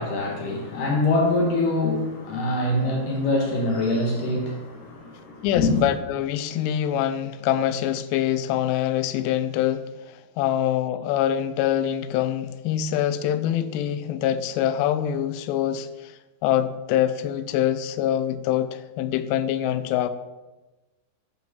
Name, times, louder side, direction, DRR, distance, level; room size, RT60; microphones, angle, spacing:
voice 1, 0.0-5.9, left 2 dB, 65° left, 2.6 m, -24 dB
voice 2, 5.4-16.1 16.4-20.1, left 11 dB, 85° left, 2.1 m, -25 dB
8.4 x 4.4 x 5.9 m
omnidirectional pair, 4.8 m